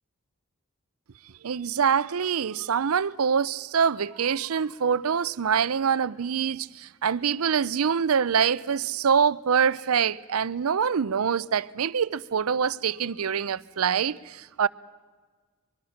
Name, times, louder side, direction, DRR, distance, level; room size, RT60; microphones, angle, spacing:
voice 1, 1.4-14.7, right 7 dB, 80° right, 0.5 m, -25 dB
23.5 x 23.0 x 5.8 m
head